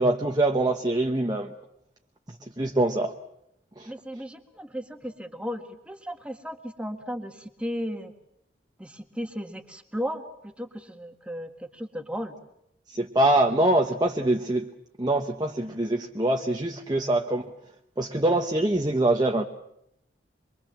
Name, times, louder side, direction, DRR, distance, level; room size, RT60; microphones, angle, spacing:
voice 1, 0.0-1.5 2.6-3.2 3.8-3.9 12.9-14.7 15.0-17.4 18.0-19.4, right 1 dB, 25° right, 3 dB, 1.1 m, -24 dB
voice 2, 3.9-8.1 8.8-12.3, equal, 5° right, 6 dB, 1.8 m, -35 dB
25.0 x 23.5 x 7.5 m, 0.78 s
head